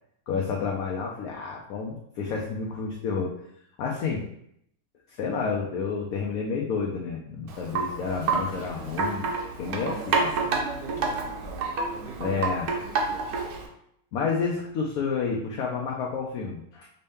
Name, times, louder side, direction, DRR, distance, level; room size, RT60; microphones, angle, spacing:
voice 1, 0.3-3.3 3.8-4.2 5.2-9.3 9.6-10.2 12.2-12.7 14.1-16.9, left 5 dB, 65° left, -2 dB, 1.0 m, -30 dB
Wind chime, 7.5-13.7, right 4 dB, 65° right, 1.1 m, -29 dB
voice 2, 9.7-12.4 12.7-13.5, right 4 dB, 80° right, 2 dB, 1.5 m, -41 dB
5.4 x 2.7 x 3.4 m, 0.74 s
omnidirectional pair, 2.0 m